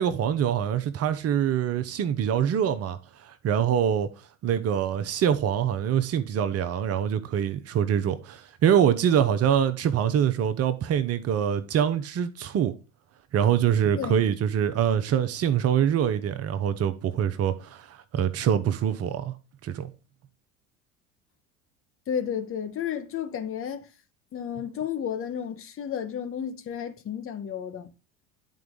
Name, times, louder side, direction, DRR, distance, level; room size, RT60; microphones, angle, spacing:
voice 1, 0.0-4.1 4.4-12.7 13.3-19.3 19.6-19.9, right 9 dB, 40° right, 0.8 m, -24 dB
voice 2, 22.1-23.9 24.3-27.9, left 8 dB, 35° left, 1.3 m, -32 dB
10.5 x 4.5 x 3.9 m
figure-of-eight pair, 70°, 38 cm